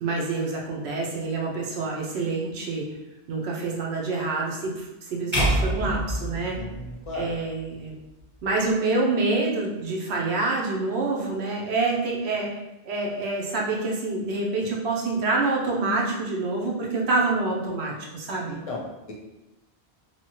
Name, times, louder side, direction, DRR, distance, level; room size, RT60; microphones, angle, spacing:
voice 1, 0.0-3.0 3.3-6.6 7.1-7.9 8.4-12.5 12.9-18.6, right 3 dB, 90° right, -2 dB, 0.9 m, -27 dB
sound 1, 5.3-7.6, right 1 dB, 10° right, 1.0 m, -27 dB
voice 2, 6.6-7.3 18.4-19.1, left 2 dB, 50° left, -2 dB, 0.4 m, -35 dB
2.9 x 2.3 x 3.0 m, 0.98 s
omnidirectional pair, 1.1 m